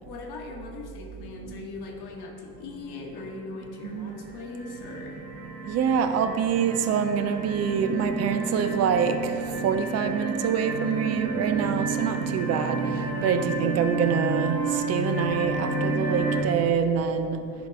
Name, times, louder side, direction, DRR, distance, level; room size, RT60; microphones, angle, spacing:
voice 1, 0.1-5.2, left 3 dB, 50° left, 0 dB, 1.1 m, -39 dB
sound 1, 3.2-3.7 4.1-16.4, right 3 dB, 80° right, 1.0 m, -30 dB
voice 2, 3.8-4.1 5.7-9.3 9.6-12.8 13.2-17.4, right 7 dB, 35° right, 9 dB, 0.4 m, -25 dB
10.5 x 4.6 x 3.3 m, 2.6 s
figure-of-eight pair, 55°, 50 cm